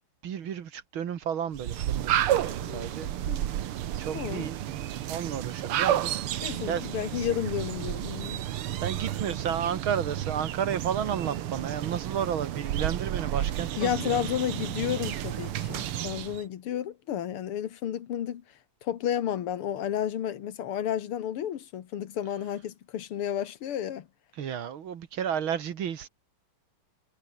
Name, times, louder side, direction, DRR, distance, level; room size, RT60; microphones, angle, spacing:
voice 1, 0.2-2.1 2.4-3.1 4.0-4.6 5.1-7.3 8.3-14.3 24.3-26.1, right 8 dB, 70° right, 2.3 m, -32 dB
sound 1, 1.5-16.4, right 12 dB, 85° right, 2.0 m, -31 dB
voice 2, 4.1-4.5 6.4-8.4 13.8-18.4 18.8-24.1, left 10 dB, 85° left, 2.3 m, -32 dB
omnidirectional pair, 2.4 m